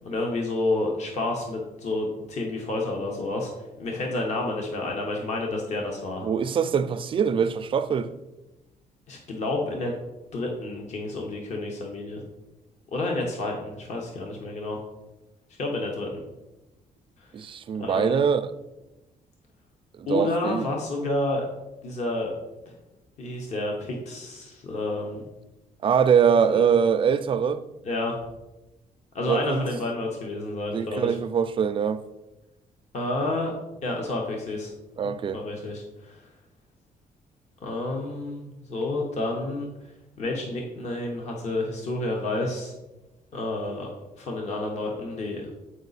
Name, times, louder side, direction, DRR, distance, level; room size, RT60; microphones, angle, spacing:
voice 1, 0.0-3.5 3.8-6.3 9.1-10.0 10.3-12.2 12.9-14.8 15.6-16.2 17.2-17.3 17.8-18.2 20.1-21.4 21.8-22.3 22.7-22.8 23.2-25.2 26.5-26.7 27.8-28.1 29.1-31.2 32.9-33.5 33.8-34.7 35.0-36.3 37.6-39.7 40.2-42.7 43.3-43.9 44.2-45.5, left 2 dB, 50° left, 1.1 m, -30 dB
voice 2, 6.2-8.1 17.3-18.5 20.0-20.6 25.8-27.6 29.3-29.6 30.7-32.0 35.0-35.4, right 7 dB, 35° right, 0.4 m, -23 dB
8.0 x 4.9 x 4.0 m
cardioid pair, 175°, 15 cm